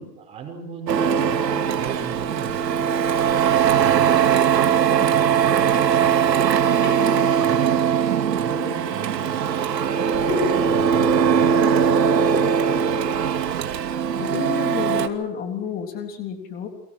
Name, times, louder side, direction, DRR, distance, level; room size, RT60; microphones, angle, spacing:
voice 1, 0.0-2.9 3.7-6.4 6.9-8.0 8.3-9.6 9.8-12.9, right 5 dB, 10° right, 1 dB, 5.7 m, -37 dB
Printer, 0.9-15.1, right 8 dB, 80° right, 2.7 m, -20 dB
sound 1, 5.7-6.4 6.8-8.0 10.3-10.6, left 4 dB, 65° left, 7.4 m, -32 dB
voice 2, 14.2-16.7, left 8 dB, 20° left, 5 dB, 3.6 m, -30 dB
29.5 x 23.5 x 6.2 m, 0.68 s
hypercardioid pair, 170°, 49 cm